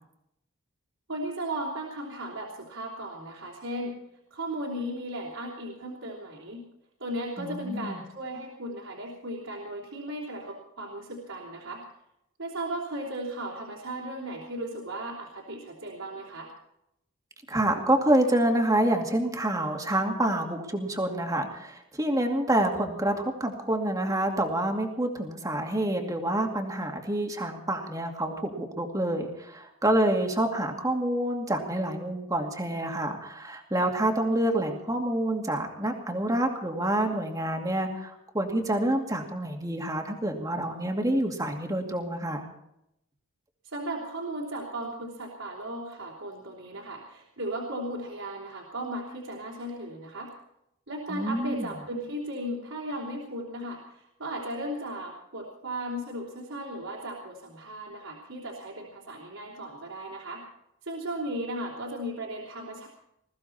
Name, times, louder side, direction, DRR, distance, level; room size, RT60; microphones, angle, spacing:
voice 1, 1.1-3.9 4.3-6.6 7.0-11.8 12.4-16.5 43.6-50.3 50.9-60.4 60.8-62.9, right 1 dB, 70° right, -3 dB, 3.5 m, -36 dB
voice 2, 7.4-8.0 17.5-42.5 51.1-51.7, right 1 dB, 15° right, 3 dB, 2.3 m, -27 dB
21.0 x 15.0 x 4.3 m, 0.80 s
head